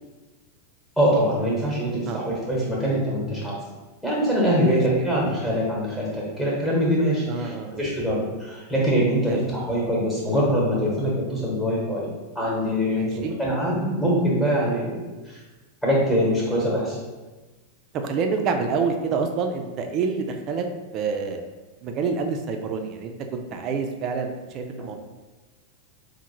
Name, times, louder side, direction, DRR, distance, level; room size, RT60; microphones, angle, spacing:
voice 1, 1.0-3.5 4.0-12.1 12.3-15.4 15.8-17.0 24.8-24.9, equal, 5° left, -6 dB, 1.1 m, -23 dB
voice 2, 7.3-7.8 9.3-9.5 12.9-13.4 17.9-20.7 20.9-21.4 21.8-25.0, right 5 dB, 35° right, 5 dB, 0.4 m, -27 dB
4.3 x 2.1 x 3.0 m, 1.2 s
figure-of-eight pair, 90°, 0 cm